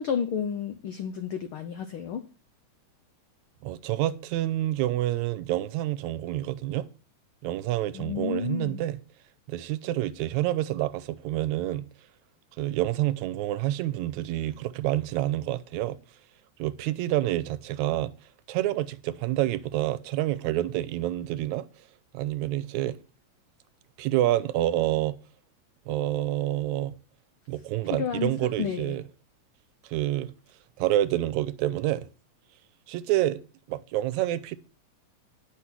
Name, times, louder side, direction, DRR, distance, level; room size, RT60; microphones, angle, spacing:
voice 1, 0.0-2.2 7.9-8.8 27.9-28.3 28.6-28.9, left 7 dB, 85° left, 1.1 m, -31 dB
voice 2, 3.6-6.9 7.4-9.0 9.5-11.9 12.6-16.0 16.6-18.1 18.5-21.7 22.1-23.0 24.0-25.1 25.9-26.9 27.5-29.0 29.8-30.3 30.8-32.1 32.9-33.4 33.7-34.6, right 14 dB, 80° right, 1.9 m, -28 dB
9.8 x 6.0 x 6.0 m
omnidirectional pair, 3.3 m